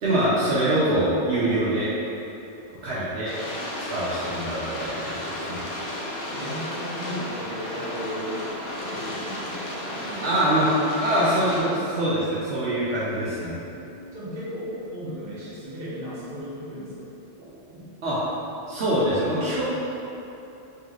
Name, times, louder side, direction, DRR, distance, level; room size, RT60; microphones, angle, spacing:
voice 1, 0.0-1.9 2.8-3.3 3.9-5.6 10.2-10.7 11.0-13.5 18.0-18.2 18.7-19.6, right 1 dB, 85° right, -9 dB, 1.0 m, -24 dB
sound 1, 3.2-11.6, left 1 dB, 70° left, 1.0 m, -33 dB
voice 2, 6.3-8.4 8.7-10.6 11.4-11.9 13.0-13.8 14.1-17.1 17.4-17.8, equal, 60° right, -8 dB, 1.3 m, -36 dB
3.8 x 3.2 x 3.0 m, 2.9 s
omnidirectional pair, 1.1 m